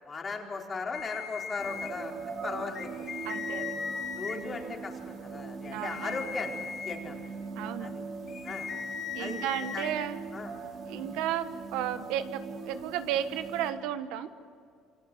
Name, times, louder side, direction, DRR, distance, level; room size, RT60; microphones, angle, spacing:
voice 1, 0.1-2.9 3.5-3.6 4.2-6.5 6.9-7.2 7.8-7.9 8.4-8.7 9.2-9.4 9.7-9.8 10.3-10.5 10.8-11.0, left 4 dB, 25° left, 1 dB, 4.4 m, -37 dB
sound 1, 0.9-1.9 2.7-4.4 5.7-7.0 8.3-9.9, left 7 dB, 45° left, 3.0 m, -38 dB
sound 2, 1.6-13.7, right 5 dB, 55° right, 5.4 m, -41 dB
voice 2, 3.2-3.6 4.3-4.8 5.7-6.2 7.5-7.9 9.1-10.2 10.8-14.3, right 11 dB, 90° right, 10 dB, 1.4 m, -34 dB
28.5 x 23.0 x 7.9 m, 2.3 s
cardioid pair, 125°, 0 cm